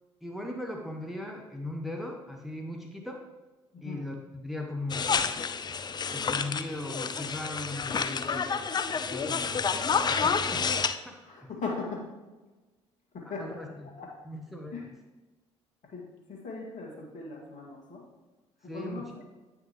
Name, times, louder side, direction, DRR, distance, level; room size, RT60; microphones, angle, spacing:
voice 1, 0.2-3.2 3.8-5.3 6.1-8.5 8.9-10.7 11.0-11.5 13.4-13.9 14.2-14.7 18.7-19.1, left 1 dB, ahead, 1 dB, 1.0 m, -38 dB
sound 1, 4.9-10.9, left 5 dB, 30° left, 0.4 m, -29 dB
voice 2, 11.2-12.1 13.1-13.6 14.0-14.1 14.7-14.9 15.8-18.0 18.6-19.0, left 4 dB, 50° left, -1 dB, 2.0 m, -39 dB
8.9 x 5.8 x 3.0 m, 1.2 s
figure-of-eight pair, 50°, 16 cm